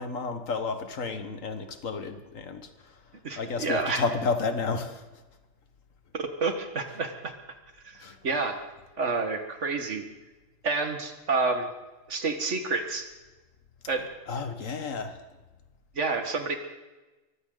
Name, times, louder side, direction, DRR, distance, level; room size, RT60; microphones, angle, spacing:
voice 1, 0.0-2.6 3.4-5.0 8.0-8.2 14.3-15.2, left 4 dB, 80° left, 8 dB, 1.8 m, -31 dB
voice 2, 3.2-4.0 6.1-7.3 7.8-8.6 9.0-10.0 10.6-11.7 12.1-13.1 13.9-14.1 16.0-16.5, right 3 dB, 65° right, 6 dB, 2.0 m, -29 dB
23.0 x 15.5 x 4.0 m, 1.1 s
omnidirectional pair, 1.3 m